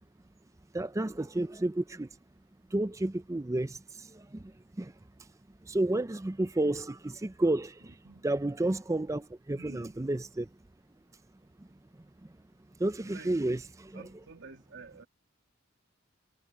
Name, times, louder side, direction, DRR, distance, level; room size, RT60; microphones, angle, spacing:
voice 1, 0.7-2.1 2.7-4.4 4.8-4.9 5.7-7.9 8.2-10.5 12.8-14.0, right 1 dB, 15° right, 0.4 m, -31 dB
voice 2, 9.5-9.9 13.0-13.5 13.9-15.1, right 4 dB, 65° right, 2.6 m, -50 dB
head